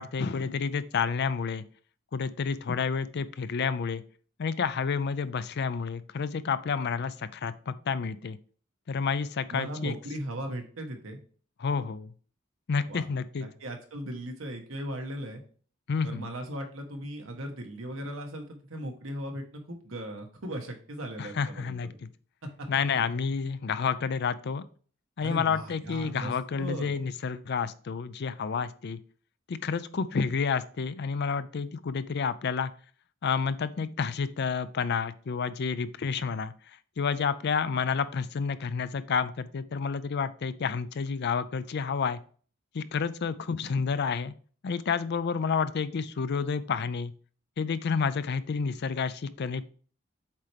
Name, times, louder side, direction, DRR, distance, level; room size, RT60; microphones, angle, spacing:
voice 1, 0.0-1.6 2.1-4.0 4.4-8.4 8.9-10.0 11.6-12.1 12.7-13.5 15.9-16.3 21.2-21.9 22.7-24.6 25.2-29.0 29.5-32.7 33.2-36.5 37.0-42.2 42.7-44.3 44.6-47.1 47.6-49.7, left 5 dB, 55° left, 14 dB, 0.4 m, -30 dB
voice 2, 9.5-11.2 12.9-13.0 13.4-15.4 16.0-22.0 22.6-22.7 25.2-26.9, right 1 dB, 80° right, 3 dB, 1.3 m, -38 dB
7.4 x 4.4 x 3.4 m, 0.43 s
head